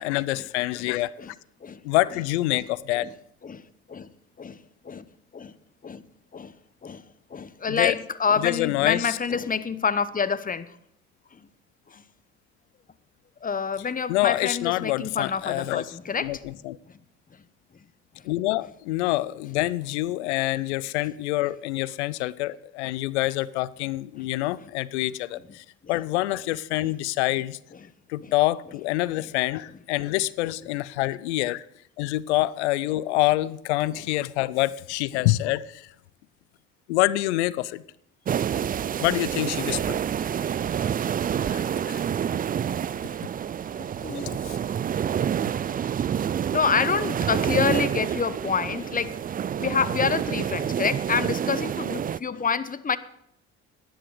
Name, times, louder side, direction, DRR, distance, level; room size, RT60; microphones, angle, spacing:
voice 1, 0.0-1.2 1.8-3.1 7.7-8.0 8.4-9.2 14.1-15.9 16.2-16.8 18.2-27.6 28.1-31.7 32.0-35.9 36.9-37.8 39.0-40.0 41.5-42.0 44.4-44.6, left 17 dB, 90° left, 0.5 m, -26 dB
voice 2, 3.4-4.1 4.4-5.0 5.3-5.5 5.8-6.0 6.3-6.5 6.8-7.0 7.3-10.8 11.3-11.5 11.9-12.0 13.4-16.4 24.2-24.3 28.2-28.3 33.9-34.0 35.1-35.3 38.6-38.7 40.4-40.5 40.8-41.0 41.8-41.9 42.2-42.3 44.0-44.3 45.2-45.3 45.7-45.9 46.3-49.2 49.6-53.0, left 6 dB, 25° left, 0.9 m, -28 dB
sound 1, 38.2-52.2, right 9 dB, 25° right, 0.4 m, -28 dB
13.0 x 10.0 x 5.0 m
hypercardioid pair, 60°, 33 cm